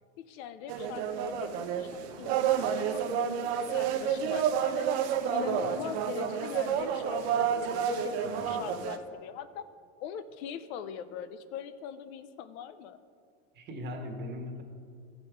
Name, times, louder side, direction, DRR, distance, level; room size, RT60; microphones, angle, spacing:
voice 1, 0.3-9.7 10.0-13.0, left 8 dB, 65° left, 12 dB, 0.7 m, -41 dB
sound 1, 0.7-9.0, right 8 dB, 70° right, 0.9 m, -30 dB
voice 2, 8.2-8.5 13.5-14.6, left 1 dB, 30° right, 1 dB, 1.5 m, -40 dB
14.0 x 5.3 x 4.6 m, 2.1 s
supercardioid pair, 140°, 34 cm